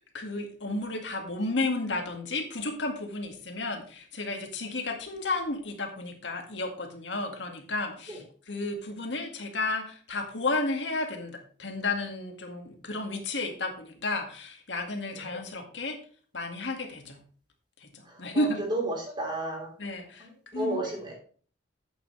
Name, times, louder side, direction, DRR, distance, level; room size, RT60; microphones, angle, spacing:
voice 1, 0.1-16.0 16.3-17.2 17.8-18.6 19.8-20.3 20.5-20.8, left 2 dB, 85° left, 4 dB, 2.1 m, -32 dB
voice 2, 18.1-19.7 20.2-20.3 20.5-21.1, right 2 dB, 25° right, -1 dB, 3.8 m, -32 dB
11.0 x 8.3 x 3.3 m, 0.43 s
head